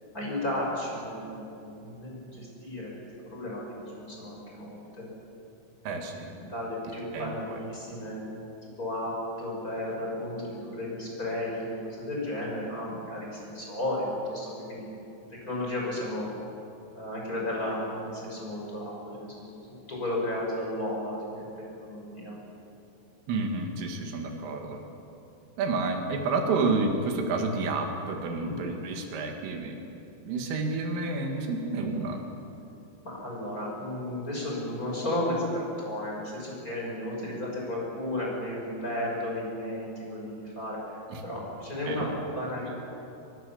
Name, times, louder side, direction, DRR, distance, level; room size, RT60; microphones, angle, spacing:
voice 1, 0.1-3.6 4.0-5.1 6.3-8.3 8.6-14.9 15.3-16.3 16.9-21.4 21.8-22.4 28.4-28.6 33.0-41.0 41.2-42.7, left 1 dB, 15° left, -3 dB, 5.6 m, -34 dB
voice 2, 5.9-6.3 7.1-7.6 23.3-24.8 25.6-29.8 30.2-32.2 41.1-41.2 41.9-42.1, right 3 dB, 80° right, 3 dB, 4.6 m, -30 dB
24.0 x 23.5 x 7.1 m, 2.8 s
omnidirectional pair, 5.8 m